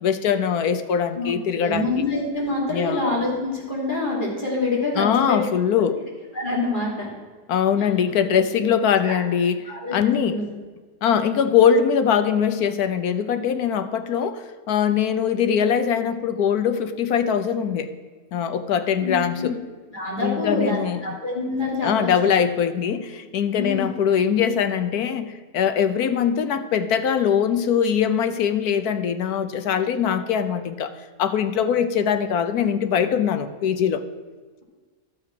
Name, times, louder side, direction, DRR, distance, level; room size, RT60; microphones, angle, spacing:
voice 1, 0.0-1.9 2.7-3.0 5.0-6.0 7.5-10.4 11.0-17.9 18.3-19.6 20.2-21.0 21.8-34.0, left 8 dB, 70° left, 10 dB, 1.2 m, -22 dB
voice 2, 1.1-5.4 6.3-7.1 9.0-9.2 9.6-9.9 10.3-10.4 19.0-19.5 19.9-22.1 23.6-23.8, left 2 dB, 30° left, -3 dB, 3.1 m, -26 dB
11.5 x 7.5 x 6.0 m, 1.4 s
omnidirectional pair, 1.8 m